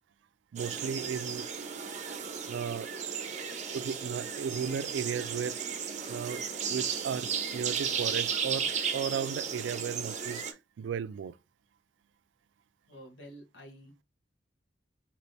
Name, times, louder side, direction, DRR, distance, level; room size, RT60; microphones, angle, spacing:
voice 1, 0.5-1.5 2.5-2.9 3.7-5.6 6.1-6.4 6.7-10.4 10.8-11.4, right 7 dB, 85° right, 0.3 m, -35 dB
sound 1, 0.6-10.5, right 6 dB, 40° right, 0.6 m, -35 dB
voice 2, 12.9-14.0, equal, 85° left, 1.3 m, -50 dB
3.3 x 2.9 x 4.1 m
head